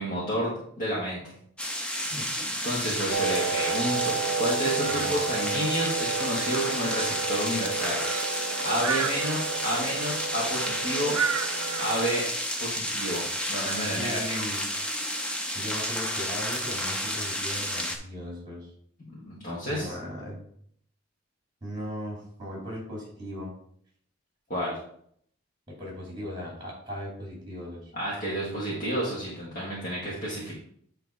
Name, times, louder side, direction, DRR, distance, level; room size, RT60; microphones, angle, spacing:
voice 1, 0.0-1.3 2.6-8.0 8.6-11.1 11.8-12.2 12.6-13.2 13.5-14.4 19.1-19.9 24.5-24.8 27.9-30.6, equal, 40° left, -7 dB, 1.6 m, -30 dB
sound 1, 1.6-18.0, equal, 5° left, 0.6 m, -31 dB
voice 2, 2.1-2.5 4.9-5.2 14.0-14.7 15.5-18.7 19.7-20.4 21.6-23.5 25.7-27.9, equal, 20° right, -3 dB, 3.1 m, -38 dB
sound 2, 3.1-12.1, right 5 dB, 90° right, 0.5 m, -31 dB
8.8 x 3.4 x 4.8 m, 0.66 s
head